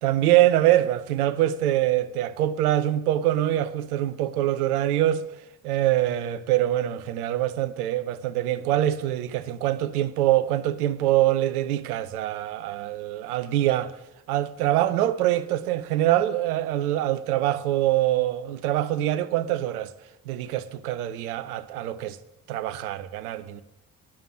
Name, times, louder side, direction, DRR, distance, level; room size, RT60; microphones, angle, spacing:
voice 1, 0.0-5.2 5.6-13.9 14.3-19.9 20.3-22.2 22.5-23.6, right 13 dB, 75° right, 0.7 m, -24 dB
11.5 x 9.3 x 6.1 m
figure-of-eight pair, 40°, 45 cm